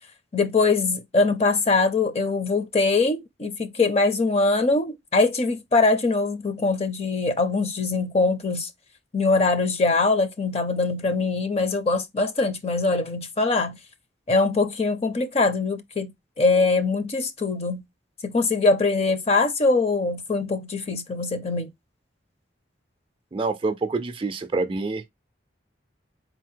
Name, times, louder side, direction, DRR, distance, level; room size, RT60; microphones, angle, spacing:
voice 1, 0.3-8.7 9.1-13.8 14.3-17.8 18.2-21.7, left 3 dB, 30° left, 0.5 m, -22 dB
voice 2, 23.3-25.1, right 3 dB, 25° right, 0.4 m, -27 dB
4.0 x 2.1 x 4.4 m
head